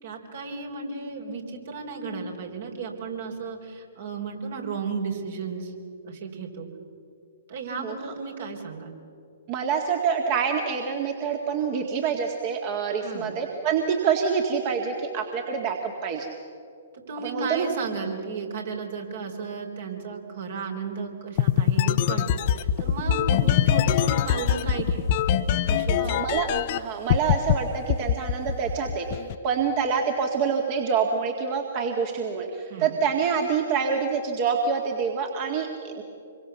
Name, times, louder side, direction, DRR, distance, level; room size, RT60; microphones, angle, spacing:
voice 1, 0.0-5.7 6.0-6.7 7.5-8.9 13.0-13.3 16.9-26.2 32.7-32.9, right 5 dB, 60° right, 2 dB, 3.9 m, -34 dB
voice 2, 9.5-16.3 17.2-17.7 26.0-26.5 26.7-36.0, right 6 dB, 40° right, 2 dB, 2.0 m, -26 dB
sound 1, 21.4-26.8 27.1-27.5 27.9-29.3, left 10 dB, 45° left, 0.8 m, -22 dB
26.5 x 23.0 x 7.1 m, 2.7 s
figure-of-eight pair, 125°, 0 cm